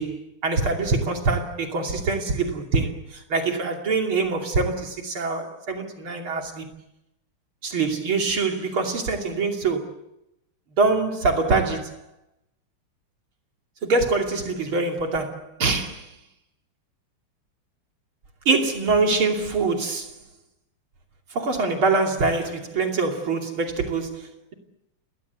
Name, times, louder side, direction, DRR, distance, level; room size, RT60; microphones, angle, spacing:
voice 1, 0.0-6.7 7.6-9.9 10.8-12.0 13.8-16.1 18.5-20.1 21.3-24.5, right 3 dB, 70° right, 3.6 m, -24 dB
28.5 x 21.5 x 8.2 m
omnidirectional pair, 2.4 m